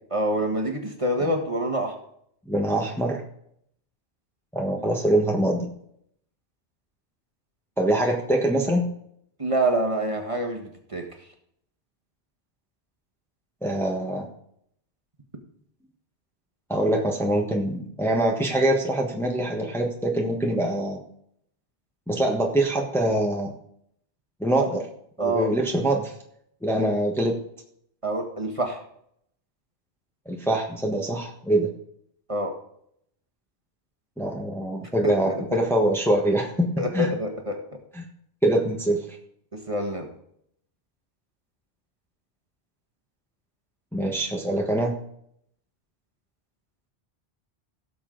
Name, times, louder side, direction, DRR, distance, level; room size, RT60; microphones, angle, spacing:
voice 1, 0.1-2.0 9.4-11.1 25.2-25.5 28.0-28.8 32.3-32.6 35.0-35.6 36.8-37.6 39.5-40.1, right 1 dB, 30° right, 3 dB, 1.6 m, -26 dB
voice 2, 2.5-3.2 4.5-5.7 7.8-8.9 13.6-14.3 16.7-21.0 22.1-23.5 24.4-24.8 25.2-26.1 26.6-27.4 30.2-31.7 34.2-37.1 37.9-38.0 38.4-39.1 43.9-44.9, right 1 dB, ahead, 1 dB, 1.3 m, -24 dB
17.0 x 6.9 x 3.9 m, 0.70 s
omnidirectional pair, 1.2 m